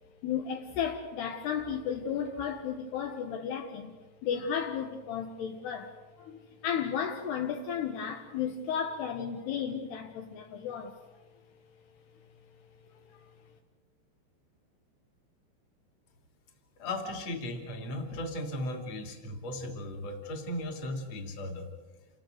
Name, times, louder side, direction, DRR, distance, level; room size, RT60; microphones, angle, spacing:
voice 1, 0.2-4.0 4.2-11.0 13.1-13.3, left 7 dB, 70° left, 3 dB, 3.3 m, -34 dB
voice 2, 16.8-21.7, left 1 dB, 40° left, 4 dB, 3.4 m, -36 dB
29.0 x 18.5 x 7.8 m, 1.3 s
omnidirectional pair, 5.1 m